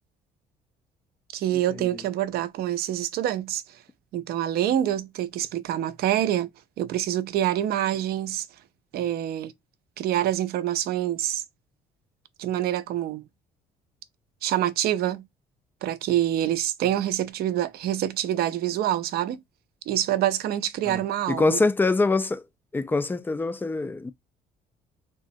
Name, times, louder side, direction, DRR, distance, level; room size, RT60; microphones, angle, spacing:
voice 1, 1.3-3.6 4.1-6.5 6.8-8.5 8.9-9.5 10.0-11.4 12.4-13.3 14.4-15.3 15.8-19.4 19.9-21.6, right 12 dB, 65° right, 0.5 m, -26 dB
voice 2, 21.3-22.4 22.7-24.1, left 3 dB, 10° left, 0.3 m, -24 dB
3.6 x 2.1 x 2.5 m
cardioid pair, 110°, 17 cm